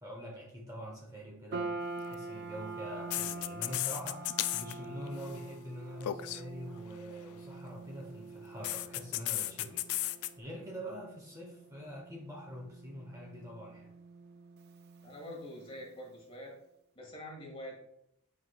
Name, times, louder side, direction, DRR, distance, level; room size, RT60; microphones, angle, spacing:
voice 1, 0.0-13.9, equal, 15° right, -1 dB, 1.0 m, -45 dB
sound 1, 1.5-15.9, right 3 dB, 50° right, 0.5 m, -45 dB
sound 2, 2.0-2.1 3.1-4.7 5.0-5.4 6.0-6.4 8.6-10.3, left 14 dB, 85° left, 0.3 m, -34 dB
voice 2, 15.0-16.6 16.9-17.7, left 1 dB, 25° left, -1 dB, 1.8 m, -45 dB
9.1 x 4.8 x 2.3 m, 0.75 s
head